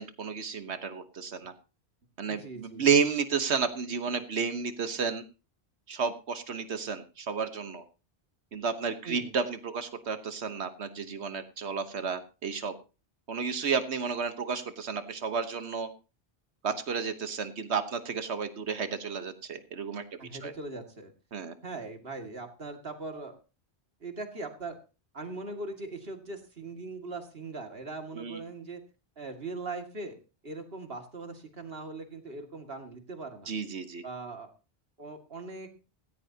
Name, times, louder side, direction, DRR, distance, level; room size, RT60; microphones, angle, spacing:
voice 1, 0.0-1.5 2.2-5.2 5.9-7.8 8.5-12.7 13.3-15.9 16.6-20.0 20.4-20.5 21.3-21.5 28.2-28.4 33.5-34.0, right 6 dB, 85° right, 9 dB, 1.5 m, -31 dB
voice 2, 2.3-3.0 9.0-9.3 20.2-21.1 21.6-23.4 24.0-24.8 25.1-28.8 29.2-30.2 30.4-33.5 34.0-34.5 35.0-35.7, right 3 dB, 65° right, 5 dB, 2.4 m, -40 dB
17.0 x 15.5 x 2.8 m, 0.32 s
omnidirectional pair, 1.1 m